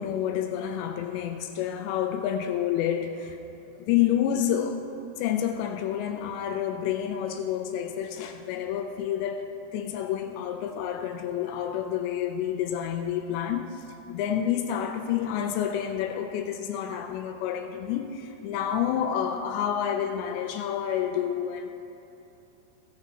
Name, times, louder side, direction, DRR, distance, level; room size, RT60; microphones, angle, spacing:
voice 1, 0.0-3.4 3.8-4.8 5.2-13.7 14.1-21.7, left 9 dB, 85° left, 6 dB, 2.8 m, -29 dB
16.0 x 12.0 x 2.9 m, 2.8 s
omnidirectional pair, 5.0 m